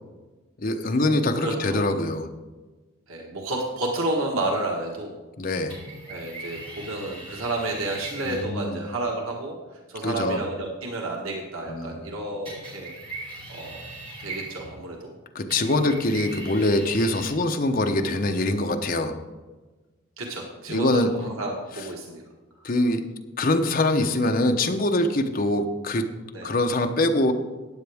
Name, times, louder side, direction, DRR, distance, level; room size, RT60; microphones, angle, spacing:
voice 1, 0.6-2.3 5.4-5.8 8.2-8.8 10.0-10.4 11.7-12.0 15.3-19.1 20.7-21.1 22.6-23.0 23.4-26.1 26.4-27.3, left 1 dB, 45° left, 5 dB, 0.9 m, -23 dB
voice 2, 1.4-1.8 3.1-5.1 6.1-9.6 9.9-13.2 13.5-13.8 14.2-15.0 20.2-22.2 26.3-26.5, right 2 dB, 85° right, 0 dB, 1.5 m, -31 dB
sound 1, 5.7-8.5 12.5-14.9 15.5-17.3, right 2 dB, 25° right, 4.1 m, -40 dB
15.0 x 9.5 x 3.5 m, 1.3 s
head